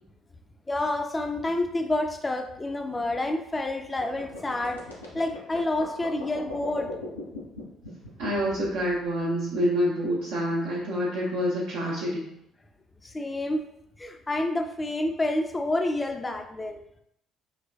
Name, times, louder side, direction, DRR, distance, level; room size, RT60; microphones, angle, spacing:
voice 1, 0.7-4.8 5.1-7.0 13.0-13.7 14.0-16.8, left 2 dB, 20° left, 6 dB, 0.4 m, -28 dB
sound 1, 4.0-9.2, left 3 dB, 90° left, 0.5 m, -41 dB
voice 2, 8.2-12.2, equal, 70° right, -7 dB, 0.6 m, -27 dB
3.2 x 2.1 x 2.4 m, 0.75 s
figure-of-eight pair, 50°, 0 cm